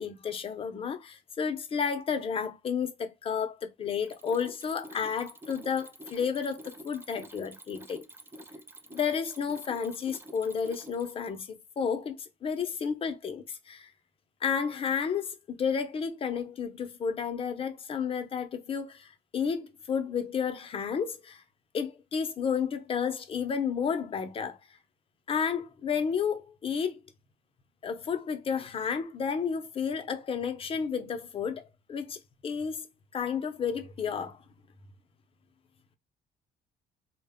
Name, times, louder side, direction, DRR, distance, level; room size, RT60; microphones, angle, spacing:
voice 1, 0.0-8.0 8.9-13.9 14.4-19.1 19.3-21.4 21.7-24.6 25.3-27.0 27.8-31.6 31.9-32.9 33.1-34.4, left 6 dB, 35° left, 0.5 m, -31 dB
Mechanisms, 3.9-11.3, right 1 dB, 15° right, 0.4 m, -48 dB
2.1 x 2.0 x 3.4 m
cardioid pair, 110°, 17 cm